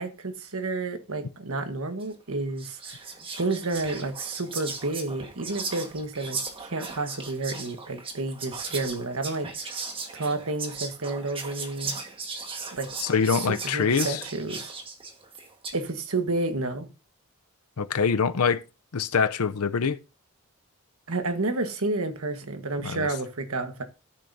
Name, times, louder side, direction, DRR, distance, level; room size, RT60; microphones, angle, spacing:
voice 1, 0.0-3.0 3.4-9.8 10.1-12.0 12.7-12.9 13.6-14.7 15.7-16.9 21.1-23.8, right 2 dB, 75° right, 1.4 m, -30 dB
Whispering, 2.0-2.2 2.6-15.9, right 4 dB, 25° right, 1.5 m, -37 dB
voice 2, 13.0-14.2 17.8-18.6 18.9-20.0 22.8-23.1, left 6 dB, 85° left, 0.6 m, -24 dB
13.5 x 10.5 x 2.7 m
head